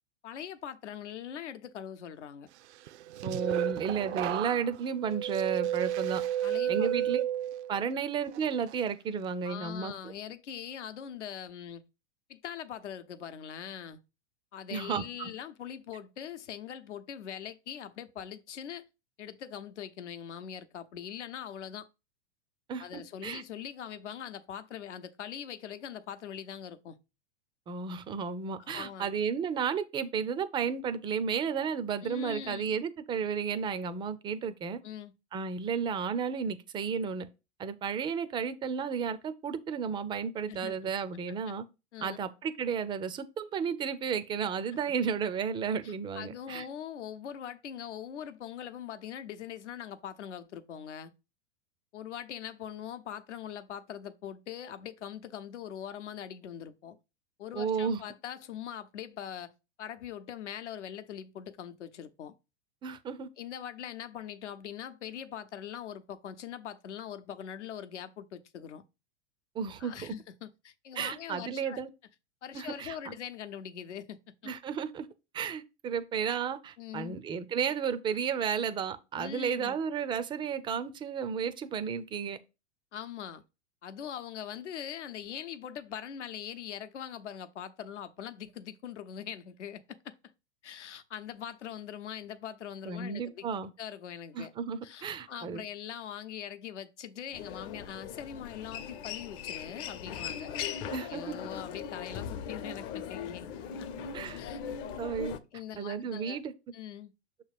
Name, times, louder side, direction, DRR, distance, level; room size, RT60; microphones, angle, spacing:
voice 1, 0.2-2.5 6.4-6.9 9.4-11.8 12.3-14.0 14.5-18.9 19.2-21.9 22.8-27.0 28.6-29.1 32.0-32.6 34.8-35.1 40.5-40.9 41.5-41.6 41.9-42.2 45.8-51.1 51.9-57.0 57.4-59.5 59.8-62.3 63.4-68.8 69.8-71.8 72.4-74.5 76.8-77.2 79.2-79.7 82.9-83.4 83.8-90.1 90.6-93.5 93.8-94.5 94.8-100.5 101.0-103.5 103.8-103.9 104.4-104.6 105.5-106.4 106.7-107.1, left 9 dB, 80° left, 0.8 m, -42 dB
sound 1, 2.9-7.9 8.3-8.7, right 12 dB, 75° right, 0.5 m, -32 dB
voice 2, 3.2-6.2 6.7-7.2 7.7-9.9 14.7-15.3 22.7-23.4 27.7-34.8 35.3-37.3 37.6-41.6 42.0-46.7 57.6-58.0 62.8-63.3 69.6-70.1 71.0-71.9 72.5-73.2 74.5-75.1 75.3-82.4 92.9-93.7 94.3-95.6 100.9-101.4 104.1-104.4 105.0-105.4 105.8-106.5, right 6 dB, 15° right, 0.3 m, -33 dB
Human voice, 97.3-105.4, left 8 dB, 50° left, 0.7 m, -39 dB
6.4 x 3.0 x 4.9 m
hypercardioid pair, 110°, 34 cm